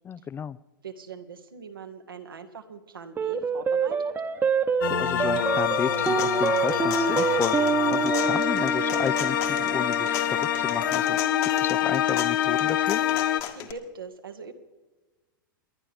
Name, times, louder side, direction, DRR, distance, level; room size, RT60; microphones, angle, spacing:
voice 1, 0.1-0.6 4.8-13.0, left 8 dB, 20° left, 18 dB, 0.4 m, -33 dB
voice 2, 0.8-4.1 13.0-13.1 13.5-14.5, right 5 dB, 85° right, 6 dB, 1.6 m, -42 dB
sound 1, 3.2-11.8, right 6 dB, 20° right, 1.0 m, -28 dB
sound 2, 4.8-13.4, left 10 dB, 70° left, 0.9 m, -26 dB
sound 3, 5.7-13.7, left 12 dB, 50° left, 1.5 m, -37 dB
29.0 x 11.0 x 3.5 m, 1.3 s
hypercardioid pair, 105°, 11 cm